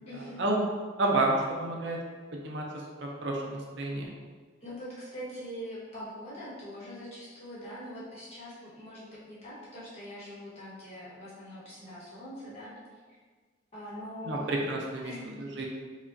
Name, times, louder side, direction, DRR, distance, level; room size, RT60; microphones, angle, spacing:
voice 1, 0.0-0.4 4.6-12.7 13.7-14.6 15.0-15.7, equal, 30° left, -9 dB, 1.1 m, -43 dB
voice 2, 1.0-2.0 2.3-2.6 3.0-4.0 14.3-15.1 15.4-15.7, right 2 dB, 60° right, -1 dB, 0.5 m, -29 dB
4.7 x 2.4 x 2.5 m, 1.5 s
head